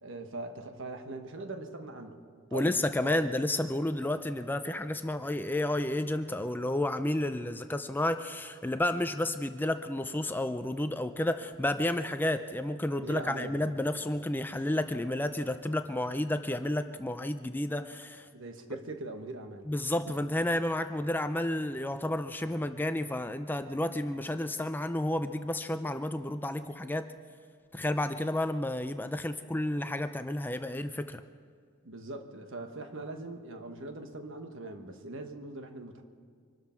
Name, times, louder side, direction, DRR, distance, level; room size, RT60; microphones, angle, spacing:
voice 1, 0.0-2.2 2.5-3.2 13.0-13.7 18.3-19.7 20.1-20.2 31.8-36.0, right 2 dB, 60° right, 6 dB, 1.3 m, -41 dB
voice 2, 2.5-18.3 19.7-27.1 27.7-31.2, left 1 dB, 10° left, 9 dB, 0.4 m, -31 dB
24.5 x 13.0 x 4.5 m, 2.1 s
head